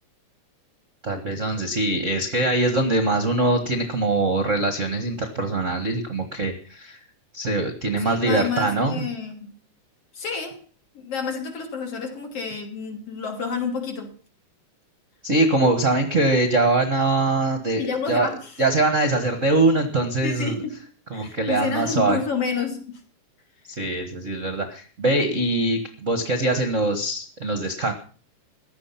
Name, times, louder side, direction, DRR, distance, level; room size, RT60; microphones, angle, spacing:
voice 1, 1.0-7.0 7.3-8.9 15.2-18.3 18.6-20.5 21.1-22.2 23.8-27.9, right 2 dB, 35° right, 1.2 m, -22 dB
voice 2, 8.0-9.6 10.1-10.6 10.9-14.1 17.8-18.6 20.2-20.8 21.1-23.0, left 5 dB, 50° left, 3.7 m, -29 dB
15.5 x 11.5 x 5.9 m
omnidirectional pair, 3.6 m